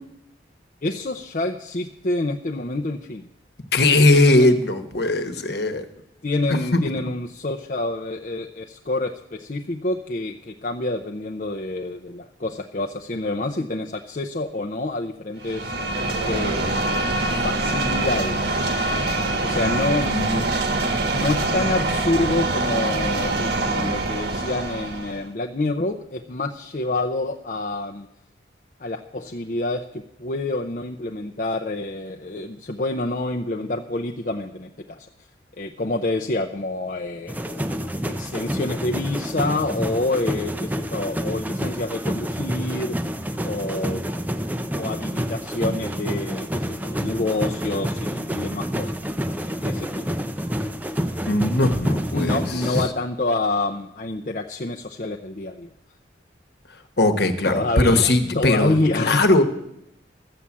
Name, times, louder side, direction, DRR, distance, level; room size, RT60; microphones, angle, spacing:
voice 1, 0.8-3.3 4.3-4.5 6.2-15.9 16.2-16.9 17.3-18.6 19.4-20.2 21.1-28.1 28.8-35.1 35.6-37.6 38.1-43.0 43.4-44.3 44.7-48.9 49.6-50.0 52.1-55.7 57.4-59.2, left 2 dB, 45° left, 2 dB, 0.6 m, -27 dB
voice 2, 3.7-5.8 6.7-6.8 19.5-19.8 20.0-20.4 51.3-52.4 57.0-59.4, left 2 dB, 60° left, 8 dB, 1.2 m, -19 dB
sound 1, 15.4-25.2, right 2 dB, 65° right, 1.4 m, -24 dB
sound 2, 37.3-52.9, equal, 10° right, 0.6 m, -28 dB
14.0 x 7.4 x 8.4 m, 0.79 s
head